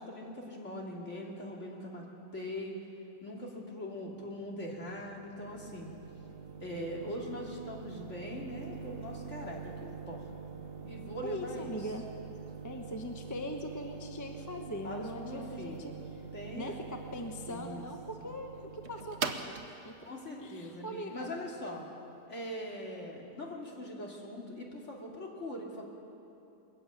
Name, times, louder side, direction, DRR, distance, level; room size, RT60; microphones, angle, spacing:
voice 1, 0.0-2.0 2.3-2.7 3.2-5.9 6.6-10.2 10.5-11.9 14.8-15.9 16.3-16.8 17.5-17.9 18.2-18.3 20.0-21.9 22.3-25.9, left 1 dB, 45° left, -1 dB, 3.0 m, -42 dB
sound 1, 4.1-21.7, right 6 dB, 50° right, 1.0 m, -44 dB
voice 2, 11.2-12.0 12.6-15.9 16.5-19.9 20.4-21.3, left 1 dB, 15° left, 3 dB, 1.0 m, -41 dB
22.0 x 14.5 x 9.2 m, 2.8 s
omnidirectional pair, 1.8 m